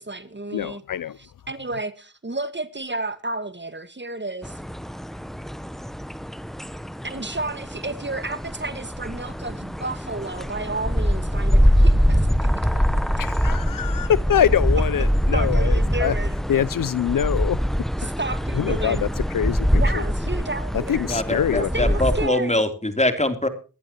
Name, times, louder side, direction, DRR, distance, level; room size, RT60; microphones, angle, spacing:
voice 1, 0.0-0.8 1.2-4.6 7.0-13.0 15.3-16.3 18.0-19.0 19.7-21.1 21.5-22.6, right 2 dB, 35° right, 1.7 m, -32 dB
voice 2, 0.5-1.2 13.2-16.1 16.5-17.6 18.5-20.0 20.9-21.9, left 9 dB, 75° left, 0.6 m, -24 dB
sound 1, 4.4-22.3, equal, ahead, 0.8 m, -23 dB
voice 3, 21.1-23.5, left 1 dB, 20° left, 3.2 m, -23 dB
23.0 x 11.5 x 2.9 m
cardioid pair, 40°, 33 cm